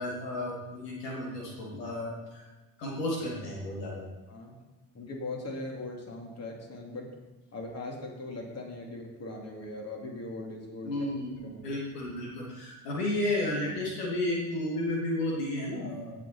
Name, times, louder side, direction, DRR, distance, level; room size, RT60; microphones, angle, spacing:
voice 1, 0.0-2.4 2.8-4.1 10.8-16.1, left 1 dB, 80° left, -3 dB, 2.6 m, -32 dB
voice 2, 4.9-7.1 7.5-11.1 11.4-11.6, left 2 dB, 30° left, 0 dB, 2.9 m, -40 dB
17.0 x 6.3 x 4.4 m, 1.2 s
hypercardioid pair, 60°, 47 cm